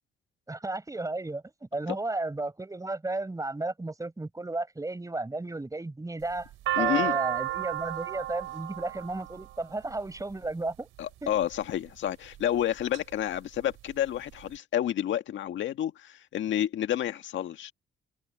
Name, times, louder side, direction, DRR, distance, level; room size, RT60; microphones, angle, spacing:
voice 1, 0.5-6.5 6.8-10.9 11.2-11.3, right 2 dB, 15° right, 5.6 m, -33 dB
sound 1, 6.2-10.4 11.3-11.7 12.3-13.0 13.3-13.4 13.6-14.4, right 15 dB, 90° right, 3.6 m, -32 dB
voice 2, 6.8-7.2 11.0-17.7, left 11 dB, 75° left, 1.8 m, -30 dB
cardioid pair, 90°, 20 cm